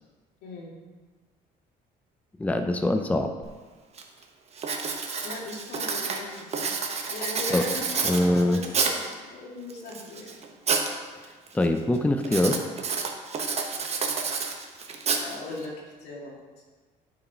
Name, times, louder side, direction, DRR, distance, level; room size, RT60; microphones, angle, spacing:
voice 1, 0.4-0.8 5.2-6.7 7.1-10.4 15.2-16.4, left 2 dB, 80° left, -3 dB, 2.1 m, -38 dB
voice 2, 2.4-3.3 7.5-7.6 8.0-8.6 11.5-12.6, left 1 dB, 10° left, 6 dB, 0.5 m, -23 dB
Writing, 3.4-3.5 4.0-4.2 4.6-9.1 9.7-10.9 11.2-11.7 12.2-15.7, right 5 dB, 40° right, 1.0 m, -29 dB
8.8 x 4.9 x 4.6 m, 1.4 s
cardioid pair, 110°, 17 cm